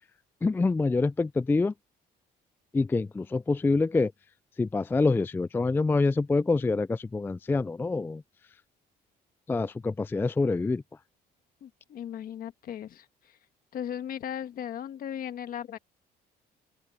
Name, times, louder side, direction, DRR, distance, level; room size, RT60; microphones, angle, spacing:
voice 1, 0.4-1.7 2.7-4.1 4.6-8.2 9.5-10.8, left 3 dB, 15° left, 0.3 m, -26 dB
voice 2, 11.6-13.4 13.7-15.8, left 9 dB, 60° left, 1.5 m, -37 dB
open air
cardioid pair, 110°, 17 cm